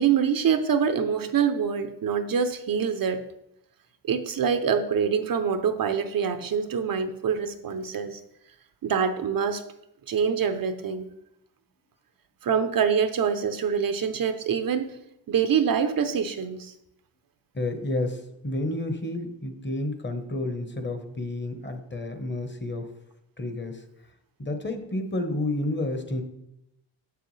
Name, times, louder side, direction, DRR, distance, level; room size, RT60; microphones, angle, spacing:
voice 1, 0.0-3.3 4.1-8.2 8.8-9.6 10.1-11.1 12.4-15.0 15.3-16.7, right 7 dB, 55° right, 10 dB, 0.6 m, -25 dB
voice 2, 17.5-22.9 23.4-23.8 24.4-26.2, left 2 dB, 25° left, 6 dB, 1.0 m, -30 dB
6.9 x 6.8 x 3.2 m, 0.82 s
cardioid pair, 80°, 42 cm